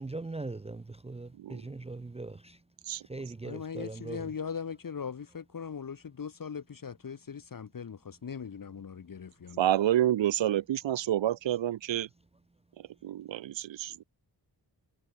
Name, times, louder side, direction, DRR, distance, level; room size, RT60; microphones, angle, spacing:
voice 1, 0.0-2.6 3.1-4.2, right 2 dB, 15° right, 0.5 m, -40 dB
voice 2, 1.3-1.7 2.8-3.1 9.6-12.1 12.8-14.0, right 12 dB, 80° right, 0.7 m, -29 dB
voice 3, 3.4-9.6, left 6 dB, 50° left, 1.5 m, -40 dB
wide cardioid pair, 130°, 44 cm